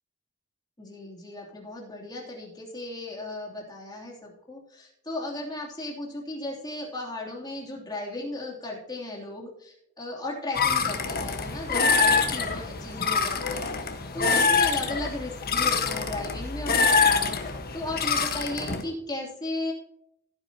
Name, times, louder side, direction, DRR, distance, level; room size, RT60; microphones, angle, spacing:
voice 1, 0.8-19.7, left 2 dB, 20° left, -3 dB, 3.1 m, -36 dB
sound 1, 10.5-18.8, left 5 dB, 45° left, 1.4 m, -25 dB
16.0 x 9.2 x 2.9 m, 0.76 s
head